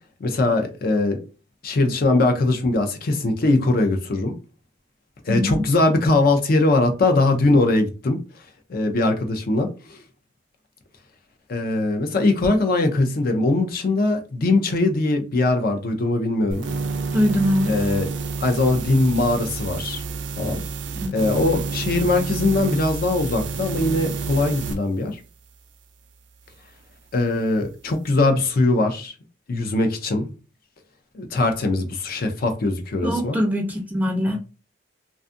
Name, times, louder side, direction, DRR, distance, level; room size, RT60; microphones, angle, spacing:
voice 1, 0.2-1.2 1.6-4.3 5.2-8.2 8.7-10.0 11.5-16.6 17.7-18.1 18.4-20.0 20.4-20.6 21.1-25.2 27.1-29.1 29.5-30.3 31.1-33.4, left 2 dB, 55° left, 0.5 m, -21 dB
voice 2, 5.3-5.7 17.1-17.8 21.0-21.1 33.0-34.4, equal, 10° right, 0.4 m, -22 dB
sound 1, 16.5-24.8, right 4 dB, 75° right, 0.4 m, -29 dB
2.5 x 2.3 x 2.5 m
head